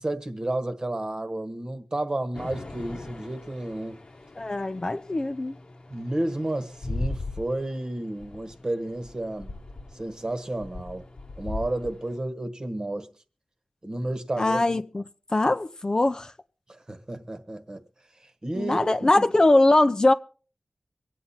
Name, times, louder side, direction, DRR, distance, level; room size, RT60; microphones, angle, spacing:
voice 1, 0.0-4.0 5.9-9.6 9.9-11.1 11.4-13.1 13.8-14.6 16.7-17.8 18.4-19.3, right 1 dB, 35° right, 1.3 m, -31 dB
sound 1, 2.3-12.2, left 2 dB, 55° left, 1.2 m, -39 dB
voice 2, 4.4-5.6 14.4-15.0 15.3-16.3 18.5-20.1, left 2 dB, 35° left, 0.7 m, -21 dB
24.5 x 8.5 x 4.2 m
wide cardioid pair, 75°, 2 cm